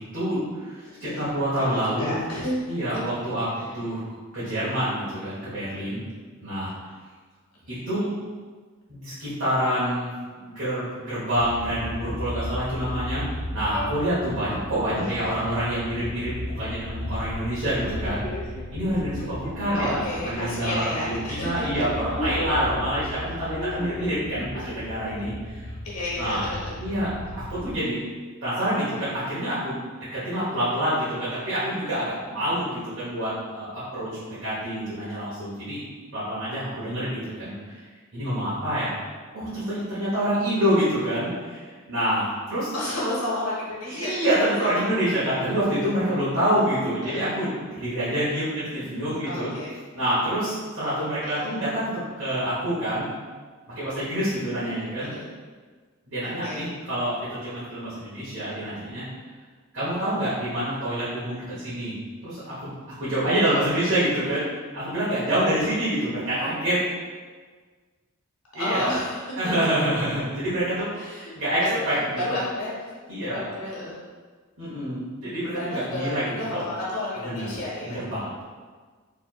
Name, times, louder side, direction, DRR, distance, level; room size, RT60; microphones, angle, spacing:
voice 1, 0.1-0.8 1.2-2.1 2.7-3.5 3.7-4.0 4.3-6.0 6.4-6.9 7.9-8.1 8.9-10.1 10.4-13.2 13.5-18.4 18.7-25.7 26.2-26.4 26.8-28.0 28.4-29.7 30.1-35.8 36.1-37.8 38.1-39.0 39.3-42.7 43.9-49.5 49.9-53.0 53.7-55.1 56.1-59.0 59.7-61.9 62.2-62.7 63.0-64.4 64.7-66.8 68.5-68.9 69.4-70.9 71.3-72.3 73.1-73.5 74.6-76.7 77.2-77.4 77.8-78.4, equal, 60° right, -12 dB, 1.2 m, -27 dB
voice 2, 2.0-3.0 4.7-4.8 7.7-7.9 15.0-15.4 19.7-21.5 25.8-26.8 42.7-44.3 44.6-44.7 47.0-47.3 49.2-49.7 51.2-51.5 55.0-55.3 56.4-56.6 63.5-63.9 68.6-69.3 70.9-71.8 72.1-72.9 73.2-74.0 75.5-76.1 76.4-78.0, left 1 dB, 80° left, -6 dB, 1.3 m, -31 dB
sound 1, 11.4-27.8, left 1 dB, 40° left, 0.3 m, -35 dB
4.4 x 3.4 x 2.4 m, 1.5 s
head